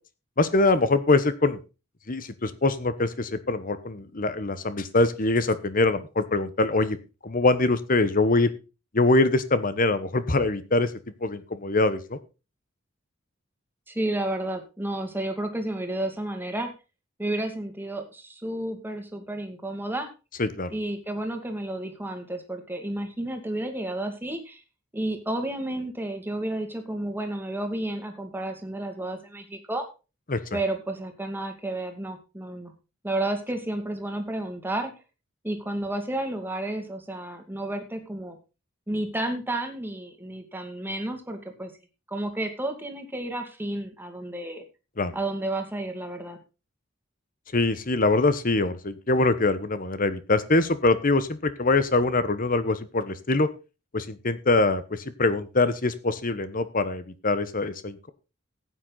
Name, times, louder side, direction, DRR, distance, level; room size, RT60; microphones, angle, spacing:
voice 1, 0.4-1.6 2.1-7.0 7.2-8.5 8.9-10.9 11.2-12.2 20.4-20.7 30.3-30.4 45.0-45.1 47.5-53.5 53.9-58.1, left 2 dB, 45° left, 13 dB, 1.2 m, -23 dB
voice 2, 13.9-16.7 17.2-20.1 20.7-24.6 24.9-29.9 30.5-32.7 33.0-34.9 35.4-38.4 38.9-41.7 42.1-44.6 45.1-46.4, right 1 dB, 10° right, 5 dB, 2.3 m, -31 dB
14.5 x 9.2 x 4.0 m, 0.31 s
head